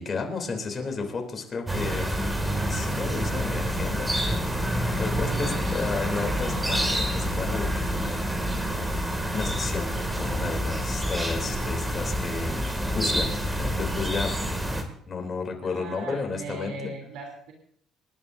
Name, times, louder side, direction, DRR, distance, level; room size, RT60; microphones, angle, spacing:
voice 1, 0.0-2.1 2.7-8.9 9.3-12.6 12.9-14.4 14.7-16.9, left 4 dB, 30° left, 3 dB, 3.2 m, -33 dB
sound 1, 1.7-14.8, equal, 10° right, 2.3 m, -28 dB
voice 2, 15.6-17.5, right 3 dB, 85° right, 0 dB, 3.2 m, -38 dB
26.5 x 11.5 x 2.7 m, 0.65 s
cardioid pair, 125°, 0 cm